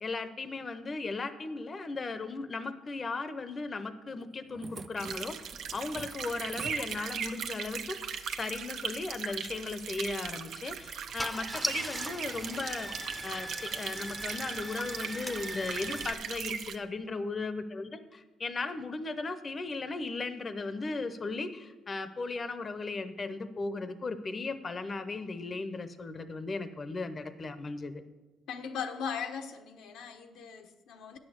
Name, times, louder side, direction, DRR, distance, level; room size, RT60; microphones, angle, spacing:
voice 1, 0.0-28.0, left 3 dB, 35° left, 11 dB, 0.7 m, -37 dB
sound 1, 4.2-7.5 9.4-10.5 10.8-11.4 12.0-12.4 13.1-13.3 13.8-14.1 15.5-15.6, right 4 dB, 40° right, 0.5 m, -50 dB
sound 2, 5.0-16.8, right 7 dB, 75° right, 0.7 m, -39 dB
Car / Engine starting, 10.1-10.3 10.9-11.0 11.2-16.1, equal, ahead, 0.6 m, -39 dB
voice 2, 28.5-31.2, left 6 dB, 85° left, 6 dB, 0.9 m, -38 dB
9.2 x 6.4 x 7.9 m, 1.2 s
cardioid pair, 90°, 0 cm